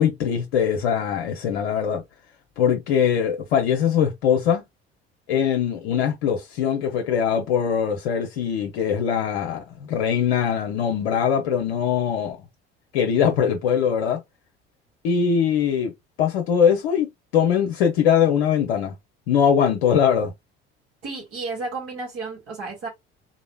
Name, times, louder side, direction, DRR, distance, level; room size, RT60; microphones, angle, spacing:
voice 1, 0.0-2.0 2.6-4.6 5.3-12.4 12.9-14.2 15.0-15.9 16.2-18.9 19.3-20.3, left 8 dB, 65° left, 0.7 m, -21 dB
voice 2, 21.0-22.9, right 3 dB, 45° right, 2.1 m, -32 dB
3.8 x 3.0 x 2.2 m
figure-of-eight pair, 55°, 32 cm